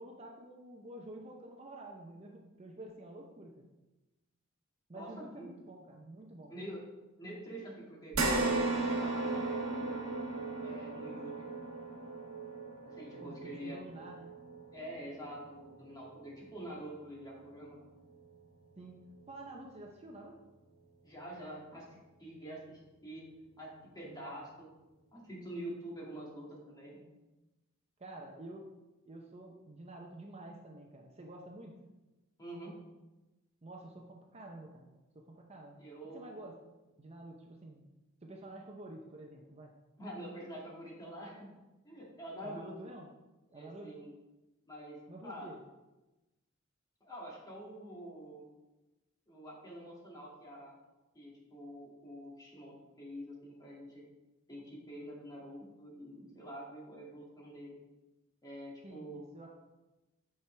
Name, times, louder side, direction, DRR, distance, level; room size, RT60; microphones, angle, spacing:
voice 1, 0.0-3.7 4.9-6.5 13.2-14.3 18.8-20.4 24.0-24.4 28.0-28.7 29.0-31.7 33.6-34.9 35.1-35.8 36.1-36.6 37.0-37.8 38.2-39.7 42.4-43.1 43.5-43.9 45.1-45.6 58.8-59.5, right 1 dB, 30° right, 1 dB, 0.7 m, -49 dB
voice 2, 4.9-5.5 6.5-6.8 7.2-8.2 8.8-10.1 10.6-11.5 12.8-13.8 14.7-17.8 21.0-23.2 23.6-24.7 25.1-27.0 32.4-32.8 35.8-36.3 40.0-41.5 41.8-42.7 43.5-44.1 44.7-45.5 47.0-48.4 49.3-50.7 51.1-54.0 54.5-57.8 58.4-59.3, right 1 dB, 20° left, -4 dB, 2.1 m, -46 dB
sound 1, 8.1-16.7 17.2-17.3 18.7-18.8, right 2 dB, 85° right, 1.4 m, -36 dB
8.7 x 6.1 x 3.3 m, 1.1 s
head